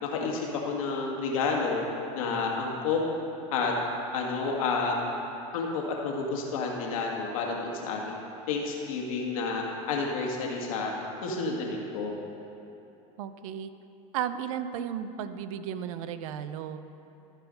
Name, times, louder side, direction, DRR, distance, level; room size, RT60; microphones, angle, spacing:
voice 1, 0.0-1.8 2.2-3.0 3.5-3.7 4.1-5.0 5.5-8.2 8.5-10.9 11.2-12.1, left 4 dB, 85° left, -1 dB, 1.7 m, -30 dB
voice 2, 13.2-13.7 14.1-16.8, right 9 dB, 80° right, 11 dB, 0.6 m, -34 dB
14.5 x 5.0 x 5.2 m, 2.9 s
supercardioid pair, 115°, 17 cm